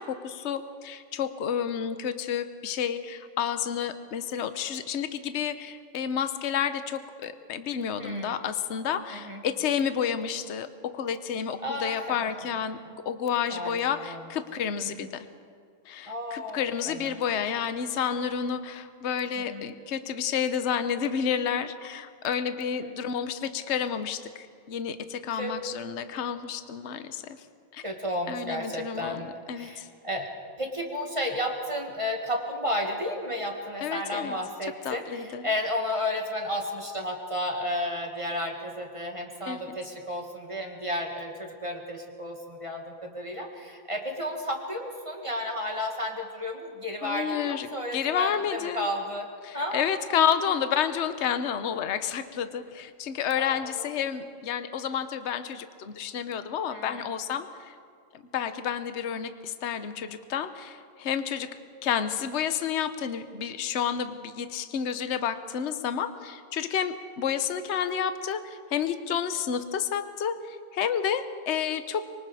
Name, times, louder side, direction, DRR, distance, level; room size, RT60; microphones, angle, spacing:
voice 1, 0.0-12.8 13.0-15.3 15.9-27.4 27.7-27.8 28.3-29.9 33.8-34.4 34.8-35.5 39.5-39.7 47.0-48.9 49.4-57.7 58.3-61.5 61.8-72.1, left 8 dB, 45° left, 10 dB, 1.0 m, -30 dB
voice 2, 8.0-8.4 9.1-9.4 11.6-12.3 13.5-14.2 14.8-15.1 16.1-16.6 16.9-17.2 19.4-19.7 22.8-22.9 25.4-25.5 27.8-30.3 30.6-49.3 49.5-49.8 53.4-53.7 56.7-57.1, left 1 dB, 15° right, 1 dB, 2.1 m, -32 dB
25.5 x 23.5 x 5.0 m, 2.2 s
omnidirectional pair, 2.1 m